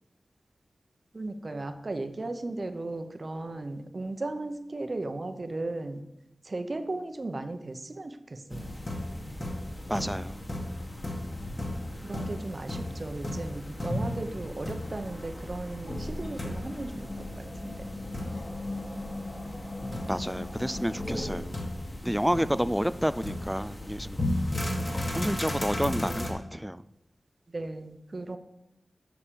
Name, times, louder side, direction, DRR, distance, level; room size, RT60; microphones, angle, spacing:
voice 1, 1.1-6.0 6.4-8.7 12.0-17.8 22.1-22.2 27.5-28.4, right 2 dB, 45° right, 8 dB, 1.0 m, -36 dB
sound 1, 8.5-26.3, left 1 dB, 25° left, 1.9 m, -35 dB
voice 2, 9.9-10.4 19.8-21.5 22.0-24.2 24.9-26.8, equal, 5° right, 15 dB, 0.4 m, -30 dB
8.7 x 6.1 x 7.0 m, 0.88 s
wide cardioid pair, 100°, 0 cm